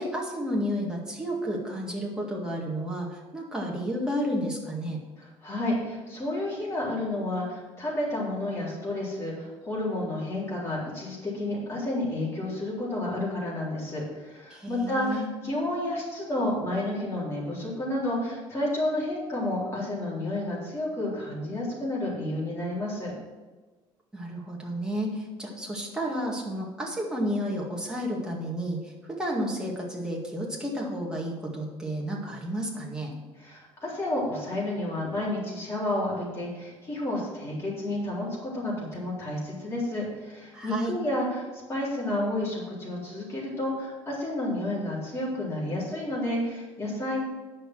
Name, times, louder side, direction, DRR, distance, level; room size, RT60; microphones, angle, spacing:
voice 1, 0.0-5.0 14.5-15.3 24.1-33.1 40.5-41.0, equal, 5° right, -2 dB, 2.1 m, -31 dB
voice 2, 5.2-23.1 33.4-47.2, left 1 dB, 25° left, -5 dB, 3.9 m, -31 dB
9.9 x 6.6 x 6.2 m, 1.3 s
cardioid pair, 150°, 11 cm